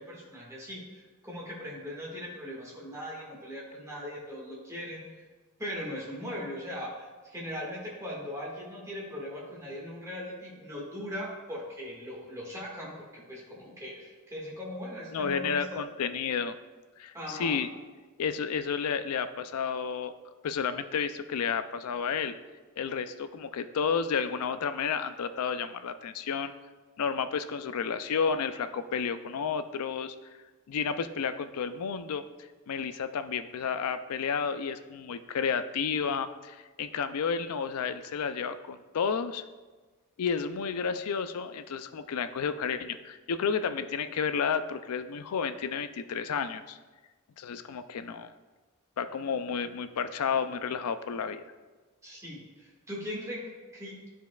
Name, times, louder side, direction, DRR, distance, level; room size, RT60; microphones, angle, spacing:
voice 1, 0.0-5.1 5.6-15.8 17.1-17.6 52.0-54.1, left 1 dB, 15° right, -4 dB, 1.7 m, -39 dB
voice 2, 15.1-16.6 17.0-17.7 18.2-20.1 20.4-22.3 22.8-26.5 27.0-30.1 30.7-32.2 32.7-39.4 40.2-46.8 47.4-48.3 49.0-51.4, left 6 dB, 80° left, 11 dB, 0.4 m, -31 dB
12.5 x 4.5 x 2.3 m, 1.3 s
head